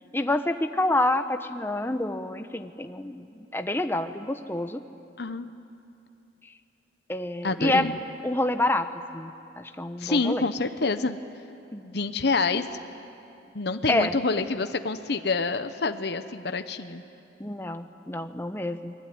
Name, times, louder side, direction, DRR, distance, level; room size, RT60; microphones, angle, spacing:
voice 1, 0.1-4.8 7.1-7.9 8.2-8.9 9.1-10.5 11.7-11.8 13.9-14.1 17.4-18.9, left 1 dB, 10° left, 8 dB, 0.9 m, -27 dB
voice 2, 5.2-5.5 7.4-8.0 10.0-11.2 11.8-12.7 13.5-17.0, left 3 dB, 60° left, 9 dB, 1.0 m, -27 dB
28.0 x 20.5 x 9.5 m, 2.6 s
head